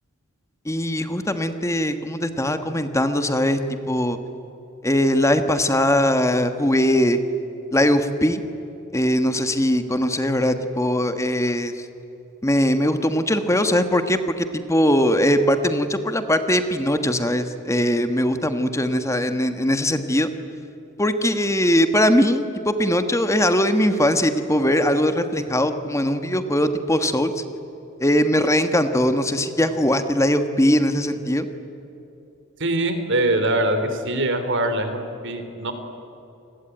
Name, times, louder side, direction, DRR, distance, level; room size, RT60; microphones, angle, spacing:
voice 1, 0.6-3.6 3.9-4.2 4.8-7.2 7.7-8.4 8.9-11.7 12.4-20.3 21.0-27.3 28.0-31.5, equal, 15° left, 8 dB, 1.4 m, -20 dB
voice 2, 32.6-35.7, right 1 dB, 60° right, 8 dB, 3.3 m, -23 dB
29.0 x 21.0 x 9.2 m, 3.0 s
head